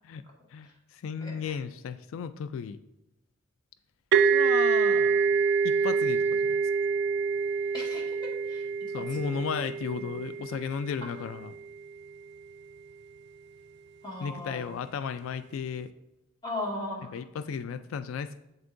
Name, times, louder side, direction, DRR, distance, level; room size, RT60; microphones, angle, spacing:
voice 1, 0.5-2.8 4.3-6.6 8.9-11.5 14.2-15.9 17.1-18.4, left 6 dB, 85° left, 13 dB, 0.3 m, -35 dB
voice 2, 1.2-1.6 7.7-8.7 9.1-9.4 10.0-10.1 14.0-14.8 16.4-17.2, left 1 dB, 20° left, -3 dB, 1.9 m, -38 dB
sound 1, 4.1-11.6, right 5 dB, 55° right, 0.4 m, -26 dB
8.0 x 7.8 x 2.6 m, 0.93 s
head